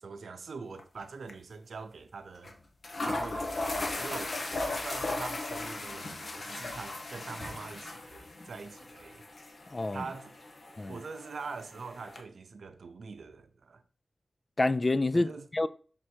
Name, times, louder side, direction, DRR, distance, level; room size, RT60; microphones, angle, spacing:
voice 1, 0.0-2.5 3.0-9.2 9.9-10.3 10.9-13.8 15.1-15.5, right 4 dB, 80° right, 0.6 m, -43 dB
sound 1, 0.8-1.0 1.3-1.4 2.4-2.5 2.8-12.2, left 2 dB, 55° left, 1.0 m, -37 dB
voice 2, 9.7-10.0 10.8-11.0 14.6-15.7, left 2 dB, 35° left, 0.3 m, -28 dB
6.1 x 3.6 x 4.5 m
cardioid pair, 65°, 0 cm